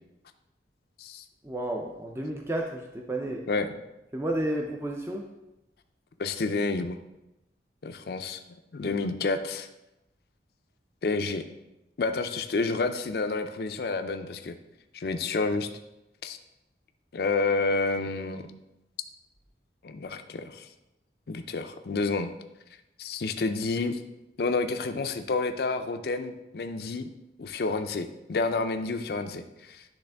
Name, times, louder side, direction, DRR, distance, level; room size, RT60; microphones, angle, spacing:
voice 1, 1.4-3.5 4.1-5.2 8.8-9.0, right 1 dB, 15° right, 1 dB, 0.4 m, -32 dB
voice 2, 6.2-7.0 7.8-8.4 8.7-9.7 11.0-11.4 12.0-14.6 14.9-15.7 16.2-16.4 17.1-18.4 19.8-20.7 21.3-22.3 23.0-24.0 24.4-27.1 27.4-29.8, left 3 dB, 60° left, 8 dB, 0.4 m, -29 dB
10.0 x 3.4 x 3.4 m, 0.93 s
head